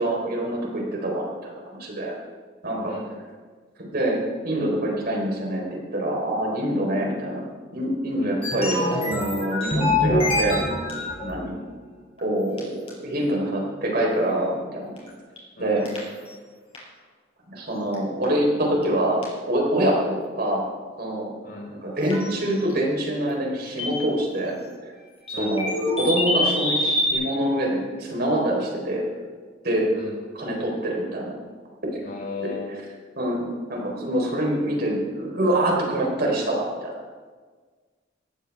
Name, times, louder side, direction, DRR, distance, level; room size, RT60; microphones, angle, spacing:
voice 1, 0.0-1.5 1.8-2.1 2.6-2.9 3.9-7.4 7.7-10.6 10.9-11.5 12.2-14.9 15.6-15.8 17.5-19.2 19.5-20.6 21.0-21.3 21.7-24.6 25.4-25.7 26.0-29.0 29.6-29.9 30.3-31.3 31.9-32.0 32.4-32.5 33.2-36.9, right 1 dB, 55° right, -1 dB, 4.2 m, -25 dB
voice 2, 2.8-3.2 8.2-8.5 11.4-11.6 15.6-16.1 21.4-21.8 25.3-25.6 29.9-30.1 32.0-32.7, left 4 dB, 55° left, -3 dB, 5.3 m, -36 dB
sound 1, 8.4-11.4 12.2-12.3 12.6-12.7 12.9-13.0 15.0-15.1 15.4-15.5 15.9-16.0 16.7-16.8 17.9-18.0 18.2-18.3 18.8-18.9 19.2-19.3 22.1-22.7 23.8-24.1 25.3-27.1, left 1 dB, 30° left, 5.1 m, -25 dB
18.0 x 14.5 x 3.6 m, 1.5 s
head